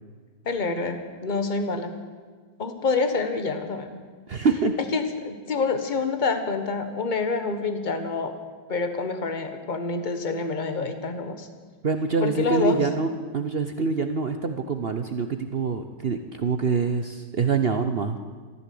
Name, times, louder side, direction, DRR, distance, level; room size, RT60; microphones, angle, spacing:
voice 1, 0.4-1.9 2.6-4.0 4.9-8.4 8.7-11.5 12.2-12.8, left 4 dB, 30° left, 7 dB, 1.3 m, -27 dB
voice 2, 4.3-4.8 11.8-18.2, right 4 dB, 55° right, 7 dB, 0.7 m, -25 dB
14.0 x 13.5 x 7.7 m, 1.5 s
omnidirectional pair, 1.9 m